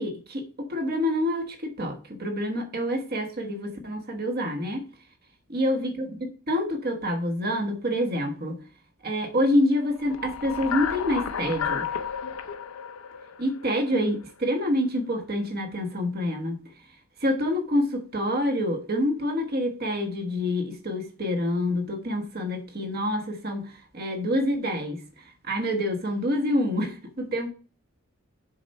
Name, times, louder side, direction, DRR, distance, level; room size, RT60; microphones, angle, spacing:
voice 1, 0.0-4.8 5.5-8.6 9.0-11.9 13.4-16.6 17.2-27.5, left 1 dB, 45° right, 5 dB, 1.3 m, -27 dB
sound 1, 10.0-14.2, left 7 dB, 80° left, 0.7 m, -32 dB
7.1 x 4.2 x 5.4 m, 0.38 s
head